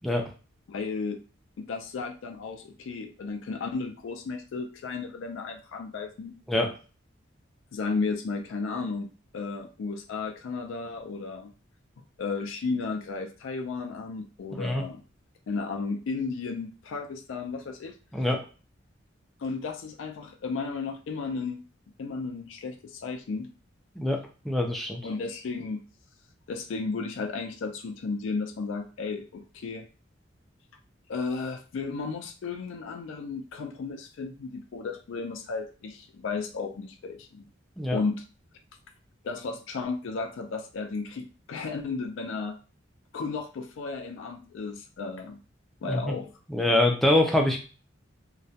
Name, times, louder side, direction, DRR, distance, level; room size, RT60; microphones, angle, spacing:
voice 1, 0.7-1.2 1.6-6.4 7.7-11.5 12.2-15.0 15.5-17.9 19.4-21.6 22.0-23.5 25.0-25.8 26.5-29.9 31.1-37.5 37.9-38.2 39.2-42.6 43.1-45.4 45.8-46.3, left 4 dB, 80° left, 5 dB, 0.4 m, -34 dB
voice 2, 14.5-14.8 18.1-18.4 24.0-24.2 24.4-25.0 37.8-38.0 45.8-46.1 46.5-47.6, left 1 dB, ahead, 0 dB, 0.3 m, -24 dB
2.3 x 2.0 x 2.7 m, 0.35 s
head